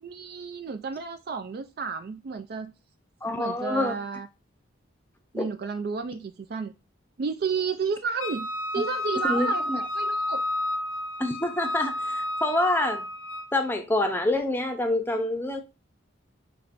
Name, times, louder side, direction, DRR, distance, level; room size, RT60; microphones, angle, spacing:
voice 1, 0.0-2.7 3.4-4.3 5.3-6.7 7.2-9.6 9.9-10.4, right 5 dB, 50° right, 0.3 m, -31 dB
voice 2, 3.2-4.0 5.3-5.5 9.2-9.8 11.2-13.1 13.5-15.6, left 1 dB, 10° left, 0.6 m, -26 dB
Wind instrument woodwind instrument, 8.2-13.6, left 1 dB, 80° left, 0.6 m, -31 dB
5.9 x 3.1 x 2.5 m
head